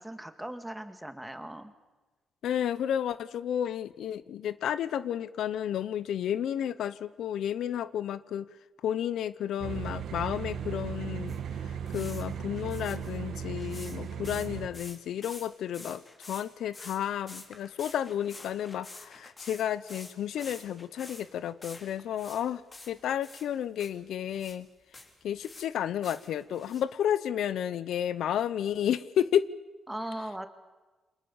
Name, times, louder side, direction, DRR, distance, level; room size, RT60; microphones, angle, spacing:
voice 1, 0.0-1.7 29.9-30.5, right 1 dB, 5° right, 8 dB, 2.0 m, -39 dB
voice 2, 2.4-8.5 8.8-11.4 11.9-16.0 16.3-22.6 22.9-24.7 25.2-29.5, left 10 dB, 75° left, 16 dB, 0.9 m, -31 dB
sound 1, 9.6-14.7, right 8 dB, 65° right, 2.3 m, -36 dB
sound 2, 11.3-11.4 11.9-12.2 12.5-14.5 14.7-15.5 15.7-16.5 16.7-17.0 17.3-22.4 22.7-23.5 23.8-23.9 24.3-24.6 24.9-25.7 26.0-26.8, left 2 dB, 20° left, 3.7 m, -48 dB
29.0 x 27.0 x 7.3 m, 1.2 s
cardioid pair, 160°, 0 cm